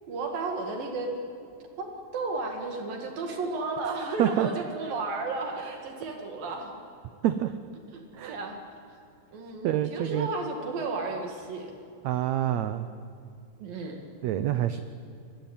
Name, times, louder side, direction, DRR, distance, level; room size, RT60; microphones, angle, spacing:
voice 1, 0.1-1.1 1.8-6.7 7.9-8.6 9.3-11.7 13.6-14.0, right 3 dB, 75° right, 2 dB, 3.8 m, -33 dB
voice 2, 9.6-10.3 12.0-12.9 14.2-14.8, right 12 dB, 90° right, 11 dB, 1.5 m, -26 dB
25.0 x 21.5 x 8.8 m, 2.5 s
omnidirectional pair, 4.2 m